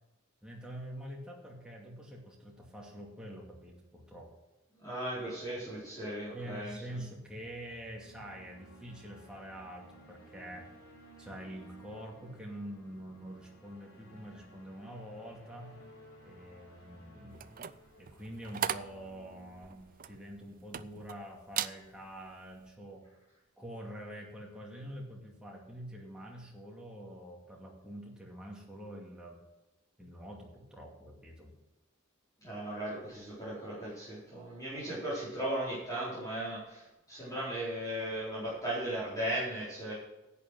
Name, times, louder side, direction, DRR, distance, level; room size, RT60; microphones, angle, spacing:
voice 1, 0.4-4.3 6.3-10.7 11.2-15.8 16.2-17.7 18.0-23.1 23.6-29.4 30.0-31.5, equal, 5° right, -2 dB, 2.4 m, -46 dB
voice 2, 4.8-6.7 32.4-39.9, right 1 dB, 15° left, -10 dB, 4.2 m, -37 dB
sound 1, 7.1-21.3, equal, 85° left, 4.2 m, -57 dB
sound 2, 17.3-21.2 21.5-21.8 22.3-22.5, right 9 dB, 40° right, 0.4 m, -38 dB
11.0 x 8.4 x 6.2 m, 1.0 s
head